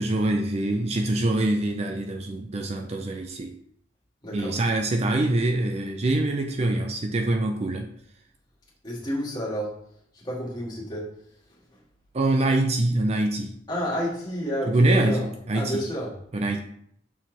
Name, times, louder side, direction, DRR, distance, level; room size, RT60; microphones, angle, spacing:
voice 1, 0.0-3.5 4.3-7.9 12.1-13.5 14.7-15.8 16.3-16.6, right 2 dB, 35° right, 4 dB, 0.5 m, -24 dB
voice 2, 4.2-4.6 8.8-9.8 10.1-11.1 11.7-11.8 13.7-15.3 15.5-16.1 16.5-16.6, equal, 20° left, -6 dB, 2.2 m, -30 dB
6.3 x 4.4 x 4.0 m, 0.67 s
head